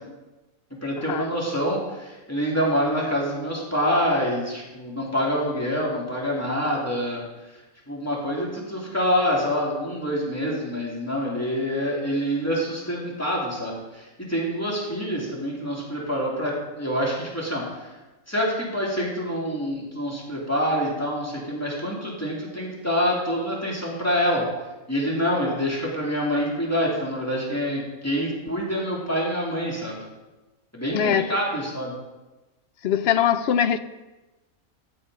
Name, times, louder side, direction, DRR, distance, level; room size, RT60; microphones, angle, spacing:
voice 1, 0.7-7.2 7.9-17.9 18.3-24.4 24.9-30.0 30.7-31.9, equal, 10° left, 3.1 m, -26 dB
voice 2, 30.9-31.3 32.8-33.8, left 9 dB, 60° left, 0.7 m, -22 dB
14.0 x 8.1 x 5.1 m
omnidirectional pair, 1.5 m